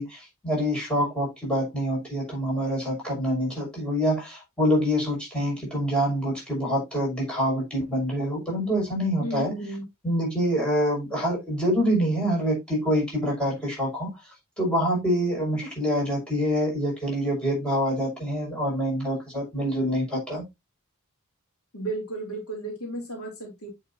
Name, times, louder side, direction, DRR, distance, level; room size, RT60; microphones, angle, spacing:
voice 1, 0.0-9.5 10.0-14.1 14.6-20.4, equal, 5° left, 5.9 m, -26 dB
voice 2, 9.2-9.8 21.7-23.7, right 2 dB, 75° left, 3.9 m, -33 dB
8.3 x 7.2 x 2.7 m
head